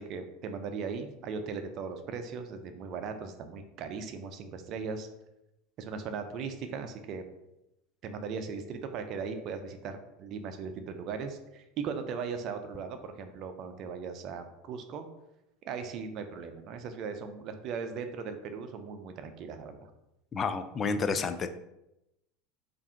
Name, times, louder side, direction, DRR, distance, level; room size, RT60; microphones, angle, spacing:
voice 1, 0.0-5.1 5.8-7.2 8.0-15.1 15.6-19.9, right 5 dB, 50° right, 7 dB, 0.5 m, -38 dB
voice 2, 20.3-21.5, left 4 dB, 30° left, 10 dB, 0.4 m, -30 dB
3.5 x 2.6 x 4.3 m, 0.88 s
hypercardioid pair, 95°, 0 cm